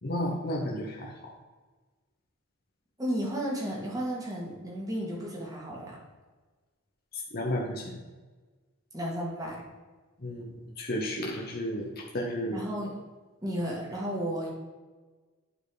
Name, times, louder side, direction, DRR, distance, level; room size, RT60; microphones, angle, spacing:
voice 1, 0.0-1.3 7.1-8.0 10.2-12.6, left 1 dB, 45° left, -2 dB, 1.0 m, -33 dB
voice 2, 3.0-6.0 8.9-9.6 12.5-12.9 13.4-14.5, equal, 15° right, -3 dB, 2.1 m, -33 dB
9.0 x 4.6 x 5.0 m, 1.3 s
head